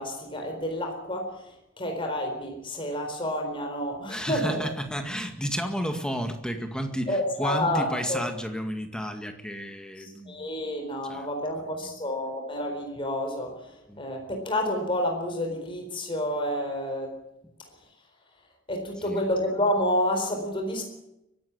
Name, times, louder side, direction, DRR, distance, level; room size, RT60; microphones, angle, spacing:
voice 1, 0.0-4.7 7.1-8.2 10.0-17.1 18.7-20.8, left 1 dB, 25° left, 3 dB, 4.2 m, -29 dB
voice 2, 4.1-10.5 11.1-11.3 13.9-14.0 19.0-19.3, equal, 5° left, 5 dB, 2.0 m, -32 dB
23.0 x 12.0 x 9.6 m, 0.87 s
head